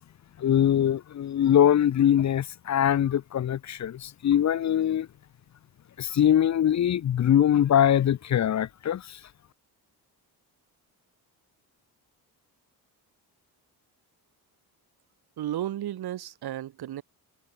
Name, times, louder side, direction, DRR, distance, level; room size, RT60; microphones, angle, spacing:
voice 1, 0.4-5.1 6.0-9.2, left 10 dB, 45° left, 0.8 m, -22 dB
voice 2, 15.4-17.0, right 12 dB, 70° right, 2.7 m, -33 dB
cardioid pair, 150°, 39 cm